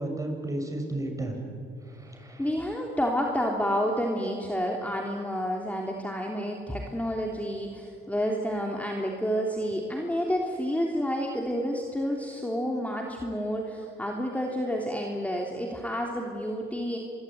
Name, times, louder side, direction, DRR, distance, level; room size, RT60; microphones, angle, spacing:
voice 1, 0.0-1.4 1.8-2.5, right 1 dB, 15° right, 3 dB, 7.1 m, -33 dB
voice 2, 2.4-17.0, equal, 5° left, 0 dB, 3.2 m, -29 dB
26.0 x 23.0 x 9.4 m, 2.4 s
cardioid pair, 90°, 20 cm